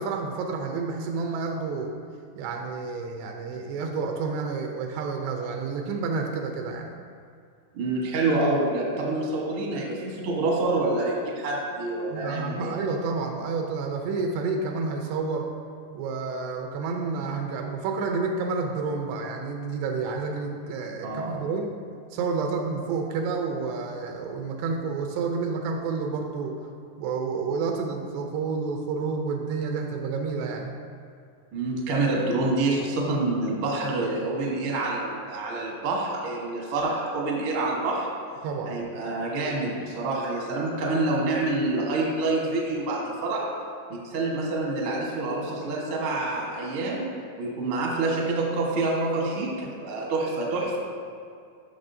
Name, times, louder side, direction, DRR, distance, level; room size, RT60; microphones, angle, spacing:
voice 1, 0.0-1.9 2.4-6.9 12.1-15.5 15.9-21.7 22.1-26.6 27.0-30.8 38.4-38.8, right 4 dB, 90° right, 3 dB, 2.8 m, -29 dB
voice 2, 7.7-12.7 21.0-21.3 31.5-38.1 38.6-43.4 43.9-47.1 47.4-50.8, right 2 dB, 75° right, -3 dB, 1.2 m, -27 dB
13.0 x 6.1 x 2.7 m, 2.3 s
omnidirectional pair, 4.7 m